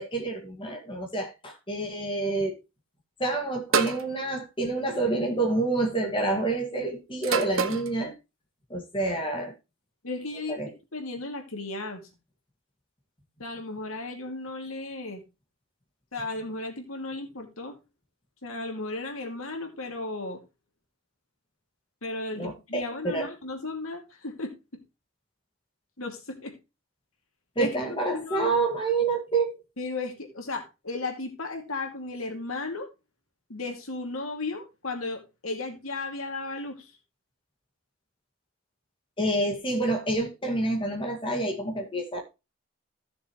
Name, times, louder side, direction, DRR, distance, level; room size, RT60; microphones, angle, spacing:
voice 1, 0.0-2.6 3.2-8.1 8.7-9.5 10.5-10.7 22.3-23.3 27.6-29.6 39.2-42.2, right 2 dB, 25° left, 2.2 m, -28 dB
sound 1, 3.7-4.1 5.2-5.6 7.2-7.9, right 6 dB, 75° right, 1.1 m, -26 dB
voice 2, 10.0-10.5 10.9-12.0 13.4-15.2 16.1-17.8 18.4-20.4 22.0-24.8 26.0-26.5 27.6-27.7 28.1-28.6 29.8-32.9 33.5-36.9, left 3 dB, 85° left, 2.7 m, -35 dB
15.0 x 6.7 x 3.2 m
head